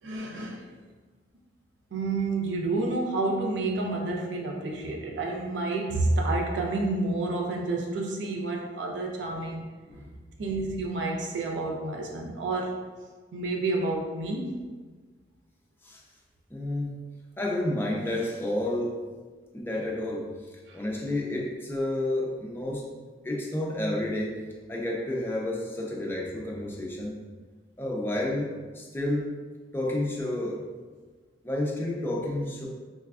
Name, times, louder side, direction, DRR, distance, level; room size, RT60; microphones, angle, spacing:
voice 1, 0.0-0.7 1.9-9.7 10.4-12.9 13.3-14.7 20.7-20.8, right 2 dB, 80° right, 1 dB, 0.4 m, -29 dB
voice 2, 16.5-16.9 17.4-19.0 19.5-20.3 20.7-22.8 23.2-24.4 24.7-27.1 27.8-29.3 29.7-30.6 31.4-32.7, left 1 dB, 10° left, -3 dB, 0.4 m, -30 dB
4.0 x 2.3 x 2.3 m, 1.4 s
head